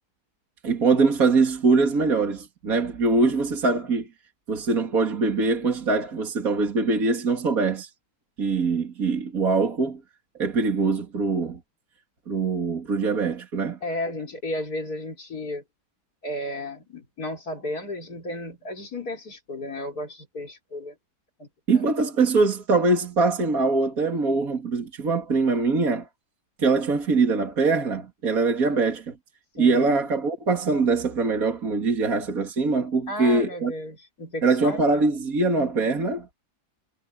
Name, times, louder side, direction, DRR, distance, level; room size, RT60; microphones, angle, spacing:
voice 1, 0.6-4.1 4.5-7.9 8.4-10.0 10.4-11.6 12.3-13.8 21.7-26.1 26.6-29.1 29.6-33.7 34.4-36.3, right 3 dB, 55° right, 2.9 m, -23 dB
voice 2, 13.8-15.6 16.2-20.9 21.4-21.5 21.7-21.8 29.6-30.0 33.1-34.9, left 1 dB, 65° left, 5.0 m, -33 dB
omnidirectional pair, 1.8 m